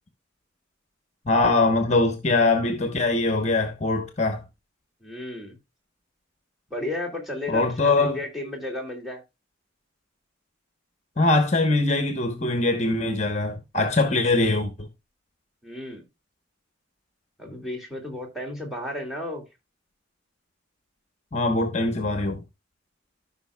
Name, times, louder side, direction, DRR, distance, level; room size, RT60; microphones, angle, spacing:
voice 1, 1.3-4.4 7.5-8.2 11.2-14.9 21.3-22.4, left 2 dB, 35° left, 1.0 m, -22 dB
voice 2, 5.0-5.6 6.7-9.2 15.6-16.0 17.4-19.4, left 1 dB, ahead, 2.4 m, -33 dB
14.5 x 5.7 x 2.3 m
head